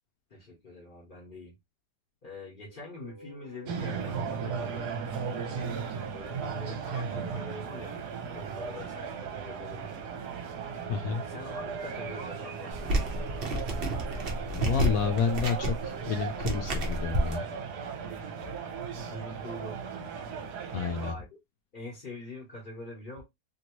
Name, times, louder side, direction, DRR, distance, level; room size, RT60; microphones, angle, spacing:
voice 1, 0.3-1.5 2.2-4.9 5.2-5.7 6.1-8.0 8.3-10.0 11.0-13.3 19.1-19.8 21.0-21.3 21.7-23.2, left 1 dB, 40° left, 0.9 m, -44 dB
sound 1, 2.6-17.6, equal, 15° right, 0.8 m, -50 dB
sound 2, 3.7-21.1, right 6 dB, 70° right, 1.2 m, -37 dB
voice 2, 10.9-11.2 14.5-17.4 20.7-21.1, left 6 dB, 70° left, 0.8 m, -30 dB
sound 3, 12.7-17.4, right 1 dB, 55° right, 0.6 m, -30 dB
2.9 x 2.6 x 3.0 m
omnidirectional pair, 1.9 m